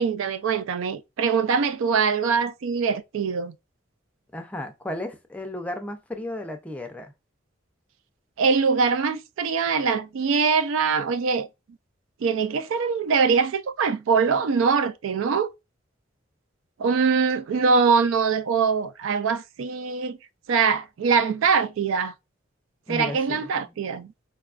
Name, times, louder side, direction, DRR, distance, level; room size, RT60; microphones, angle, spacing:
voice 1, 0.0-3.5 8.4-11.5 12.2-15.5 16.8-20.2 20.5-22.1 22.9-24.1, right 5 dB, 85° right, 0.4 m, -23 dB
voice 2, 4.3-7.1 22.9-23.7, left 1 dB, 5° left, 0.4 m, -34 dB
4.0 x 2.2 x 2.4 m
head